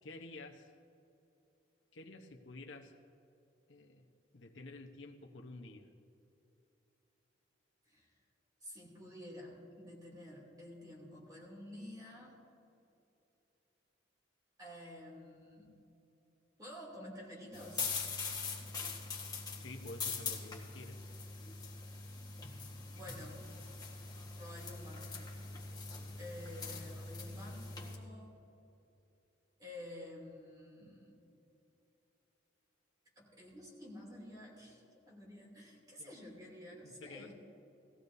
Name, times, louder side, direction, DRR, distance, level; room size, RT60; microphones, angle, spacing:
voice 1, 0.0-0.7 1.9-2.9 3.7-4.0 4.3-5.9 19.5-21.1 26.0-26.3 36.0-36.1 36.8-37.3, left 2 dB, 85° left, 2 dB, 1.0 m, -50 dB
voice 2, 8.6-12.4 14.6-15.7 16.6-17.8 22.9-23.4 24.4-25.3 26.2-28.4 29.6-31.2 33.2-37.3, left 1 dB, 20° right, -3 dB, 2.9 m, -50 dB
sound 1, 17.5-27.9, left 4 dB, 20° left, 1.5 m, -43 dB
19.0 x 15.0 x 2.7 m, 2.9 s
head